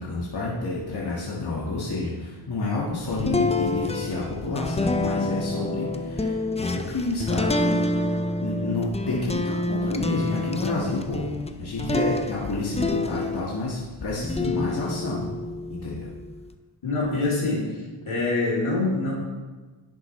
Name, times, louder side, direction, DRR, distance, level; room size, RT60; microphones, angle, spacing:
voice 1, 0.0-7.8 8.4-11.3 11.6-15.3 15.7-16.1, left 2 dB, 50° left, -6 dB, 1.8 m, -29 dB
sound 1, 3.1-13.7 14.2-16.5, left 2 dB, 15° left, 0.4 m, -28 dB
voice 2, 16.8-17.7 18.0-19.1, left 2 dB, 75° left, -5 dB, 2.9 m, -24 dB
10.5 x 7.4 x 3.2 m, 1.3 s
wide cardioid pair, 75°, 49 cm